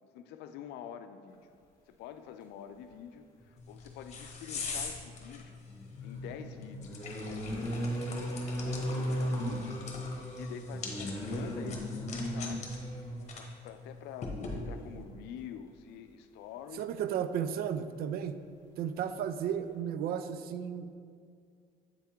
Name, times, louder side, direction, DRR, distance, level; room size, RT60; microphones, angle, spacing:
voice 1, 0.0-1.5 1.9-5.6 6.0-8.0 8.6-12.7 13.4-16.9, left 8 dB, 85° left, 9 dB, 0.4 m, -47 dB
sound 1, 3.4-3.5 5.7-13.3 14.5-14.7 15.0-15.2, equal, 20° left, 1.7 m, -36 dB
sound 2, 3.6-15.0, left 4 dB, 40° left, 1.0 m, -43 dB
voice 2, 16.8-18.4 18.8-20.9, right 8 dB, 65° right, 11 dB, 0.4 m, -34 dB
8.1 x 3.5 x 4.4 m, 2.2 s
cardioid pair, 110°, 17 cm